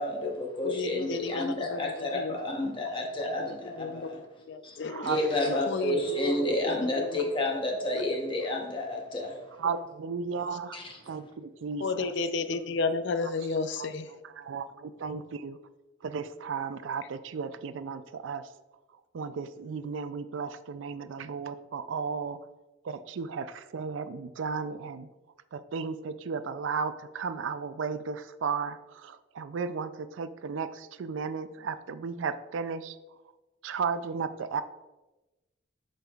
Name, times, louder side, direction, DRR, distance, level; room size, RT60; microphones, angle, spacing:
voice 1, 0.0-4.2 4.6-4.8 5.0-9.3 10.7-10.8, left 1 dB, 25° left, 0 dB, 0.9 m, -30 dB
voice 2, 0.6-2.4 3.0-4.1 4.5-5.1 5.6-7.2 7.9-8.2 11.8-14.1, left 4 dB, 65° left, 11 dB, 0.4 m, -33 dB
voice 3, 4.9-5.6 6.3-6.4 7.2-7.3 9.5-10.8 11.0-12.1 13.8-14.0 14.2-15.6 16.0-18.5 18.9-22.4 22.8-25.1 25.5-33.2 33.6-34.6, right 5 dB, 75° right, 12 dB, 0.4 m, -35 dB
7.5 x 5.4 x 2.3 m, 1.1 s
head